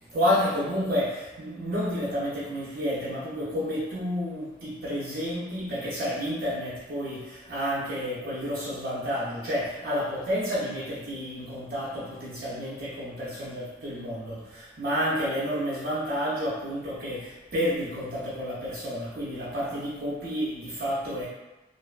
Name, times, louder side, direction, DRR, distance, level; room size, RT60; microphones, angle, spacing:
voice 1, 0.0-21.3, equal, 50° right, -8 dB, 0.5 m, -30 dB
2.5 x 2.2 x 2.3 m, 1.0 s
head